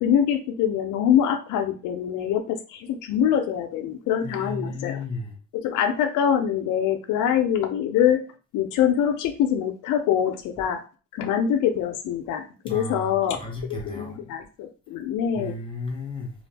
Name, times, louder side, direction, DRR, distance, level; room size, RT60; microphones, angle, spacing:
voice 1, 0.0-5.0 5.5-8.2 8.5-10.8 11.1-13.4 13.7-15.5, left 9 dB, 90° left, 0.5 m, -24 dB
voice 2, 4.2-5.3 12.7-14.2 15.3-16.3, left 2 dB, 15° left, 1.1 m, -34 dB
2.5 x 2.4 x 3.3 m
cardioid pair, 90°, 30 cm